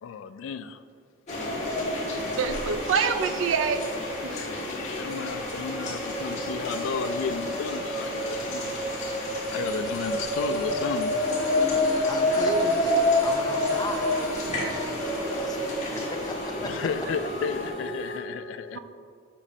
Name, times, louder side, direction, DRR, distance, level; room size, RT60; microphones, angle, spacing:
voice 1, 0.0-0.8 4.3-8.8 9.3-11.2 12.3-12.5 16.6-18.8, left 6 dB, 85° left, 13 dB, 0.3 m, -33 dB
sound 1, 1.3-17.7, left 1 dB, 40° left, 1.6 m, -28 dB
voice 2, 2.3-3.9 4.2-4.4 17.1-17.2 18.7-18.8, right 6 dB, 85° right, 9 dB, 0.4 m, -26 dB
sound 2, 9.7-15.0, right 1 dB, 5° right, 1.5 m, -46 dB
sound 3, 11.2-18.2, equal, 65° left, 1.5 m, -36 dB
voice 3, 11.7-14.2 14.5-17.1, left 2 dB, 20° left, 4 dB, 0.5 m, -36 dB
8.3 x 5.0 x 2.7 m, 2.4 s
head